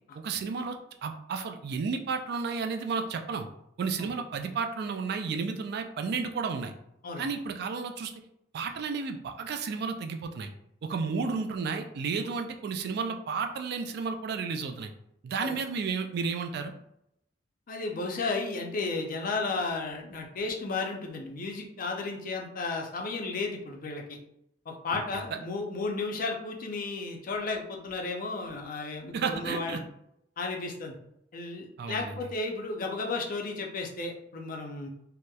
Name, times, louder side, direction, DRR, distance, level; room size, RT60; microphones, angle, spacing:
voice 1, 0.2-3.5 3.8-6.7 7.2-8.1 8.5-10.5 10.8-14.9 15.2-16.7 29.1-29.8 31.8-32.2, right 5 dB, 60° right, 6 dB, 0.3 m, -32 dB
voice 2, 17.7-24.2 24.7-29.8 30.4-30.9 31.3-34.9, left 3 dB, 50° left, 1 dB, 0.4 m, -33 dB
2.8 x 2.0 x 2.2 m, 0.77 s
head